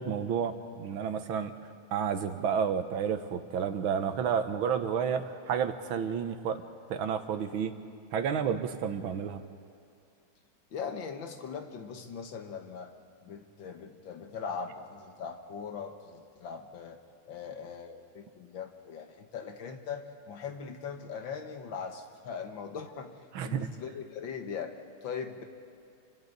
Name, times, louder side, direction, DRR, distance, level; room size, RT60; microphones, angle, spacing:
voice 1, 0.0-6.6 6.9-7.8 8.1-9.4 23.3-23.7, right 7 dB, 80° right, 9 dB, 1.8 m, -31 dB
voice 2, 10.7-12.9 13.2-17.0 17.3-25.4, left 6 dB, 70° left, 5 dB, 2.1 m, -40 dB
29.5 x 25.0 x 4.0 m, 2.5 s
omnidirectional pair, 2.2 m